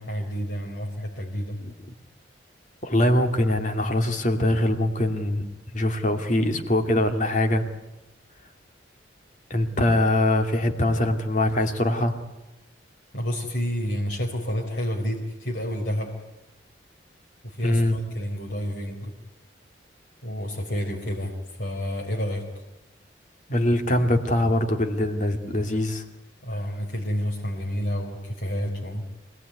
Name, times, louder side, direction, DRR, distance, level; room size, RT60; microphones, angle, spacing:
voice 1, 0.0-1.6 13.1-16.2 17.4-19.1 20.2-21.3 21.6-22.4 26.4-29.0, equal, 70° left, -2 dB, 4.2 m, -29 dB
voice 2, 2.8-5.4 5.7-7.6 9.5-12.2 17.6-18.0 23.5-26.0, left 1 dB, 40° left, 6 dB, 2.4 m, -22 dB
26.0 x 18.5 x 9.6 m, 1.0 s
head